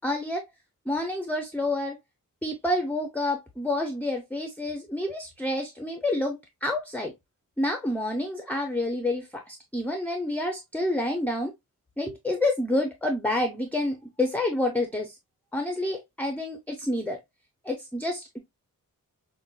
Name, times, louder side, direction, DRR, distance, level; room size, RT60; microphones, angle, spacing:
voice 1, 0.0-0.4 0.9-2.0 2.4-7.1 7.6-11.5 12.0-15.1 15.5-17.2 17.6-18.4, left 1 dB, 5° left, 0.4 m, -28 dB
5.2 x 2.1 x 2.2 m
wide cardioid pair, 175°, 34 cm